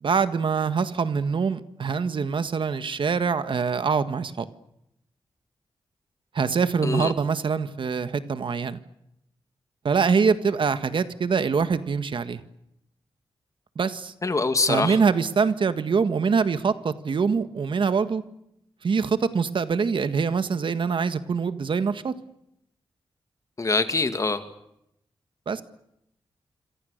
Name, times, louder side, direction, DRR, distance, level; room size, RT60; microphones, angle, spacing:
voice 1, 0.0-4.5 6.3-8.8 9.8-12.4 13.7-14.1 14.7-18.2 18.8-22.1 25.5-25.6, right 5 dB, 60° right, 11 dB, 1.7 m, -24 dB
voice 2, 6.8-7.1 14.2-15.0 23.6-24.4, left 3 dB, 35° left, 9 dB, 2.4 m, -24 dB
27.0 x 27.0 x 6.7 m, 0.79 s
wide cardioid pair, 120°, 9 cm